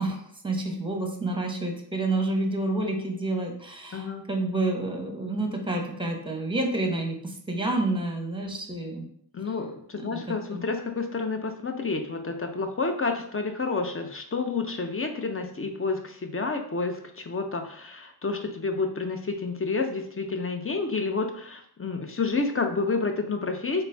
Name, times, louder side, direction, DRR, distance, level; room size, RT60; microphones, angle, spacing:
voice 1, 0.0-9.1 9.4-9.5 9.9-10.2 10.5-10.6, right 2 dB, 10° right, 2 dB, 0.9 m, -29 dB
voice 2, 3.9-4.2 9.3-23.8, left 4 dB, 30° left, 5 dB, 0.6 m, -29 dB
4.0 x 2.2 x 3.3 m, 0.65 s
cardioid pair, 45°, 47 cm